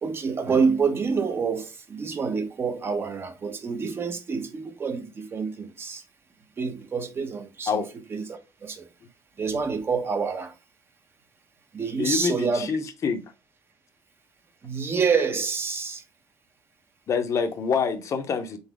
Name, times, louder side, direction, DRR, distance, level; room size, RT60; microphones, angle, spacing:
voice 1, 0.0-6.0 6.6-7.8 8.1-8.9 9.4-10.5 11.7-12.7 14.6-16.0, right 5 dB, 30° right, 0.8 m, -27 dB
voice 2, 12.0-13.2 17.1-18.6, left 6 dB, 45° left, 0.8 m, -26 dB
4.0 x 3.9 x 3.5 m
cardioid pair, 120°, 7 cm